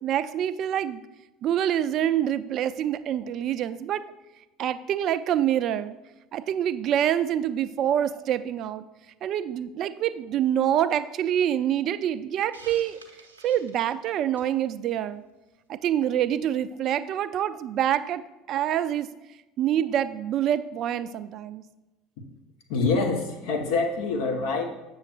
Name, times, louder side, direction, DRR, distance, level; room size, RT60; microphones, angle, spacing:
voice 1, 0.0-1.0 1.4-4.0 4.6-5.9 6.3-8.9 9.2-13.0 13.4-15.2 15.7-19.1 19.6-21.6, right 10 dB, 50° right, 14 dB, 0.3 m, -26 dB
Hiss, 12.5-14.6, right 3 dB, 85° right, 0.6 m, -49 dB
voice 2, 22.7-24.6, left 4 dB, 65° left, 4 dB, 0.9 m, -25 dB
7.6 x 6.4 x 2.4 m, 1.0 s
figure-of-eight pair, 65°, 0 cm